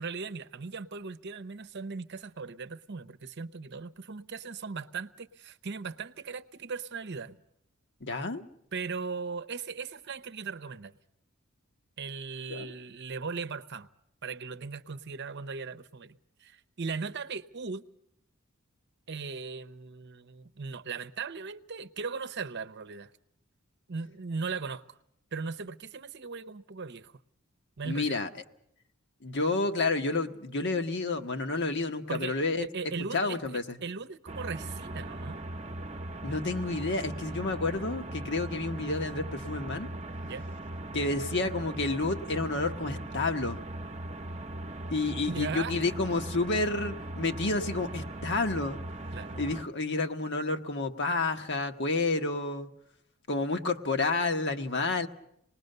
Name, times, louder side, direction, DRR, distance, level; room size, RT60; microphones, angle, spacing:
voice 1, 0.0-7.4 8.7-10.9 12.0-13.9 14.2-17.9 19.1-23.1 23.9-25.0 25.3-27.1 27.8-28.2 32.1-35.4 40.2-40.5 45.2-45.8 49.1-49.4, right 5 dB, 55° right, 0.8 m, -38 dB
voice 2, 8.0-8.4 12.5-12.7 27.8-28.3 29.2-32.7 33.1-33.8 36.2-39.9 40.9-43.6 44.9-48.8 49.4-52.7 53.3-55.1, left 3 dB, 55° left, 1.3 m, -30 dB
sound 1, 34.3-49.6, right 1 dB, 30° right, 0.9 m, -39 dB
26.0 x 20.0 x 6.7 m
head